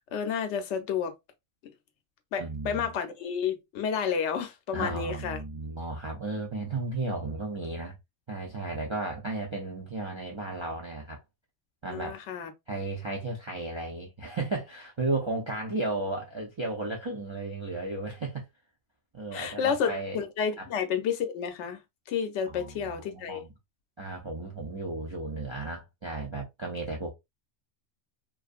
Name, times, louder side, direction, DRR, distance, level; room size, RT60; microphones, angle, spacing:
voice 1, 0.1-1.1 2.3-5.4 11.9-12.5 19.3-21.8 22.1-23.4, left 7 dB, 75° left, 0.9 m, -30 dB
voice 2, 2.4-3.0 4.7-8.0 8.3-11.2 11.8-12.2 12.7-18.5 19.1-20.2 20.6-20.7 22.5-23.5 24.0-27.1, right 2 dB, 50° right, 0.3 m, -34 dB
2.5 x 2.4 x 2.3 m
omnidirectional pair, 1.2 m